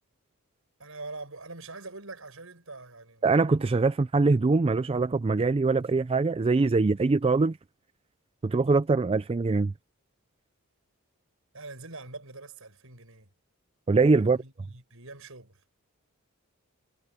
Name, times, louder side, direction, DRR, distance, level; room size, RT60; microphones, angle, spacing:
voice 1, 0.8-3.3 11.5-13.3 14.2-15.6, right 3 dB, 70° right, 7.1 m, -44 dB
voice 2, 3.2-7.6 8.4-9.7 13.9-14.4, right 3 dB, 25° right, 0.3 m, -23 dB
head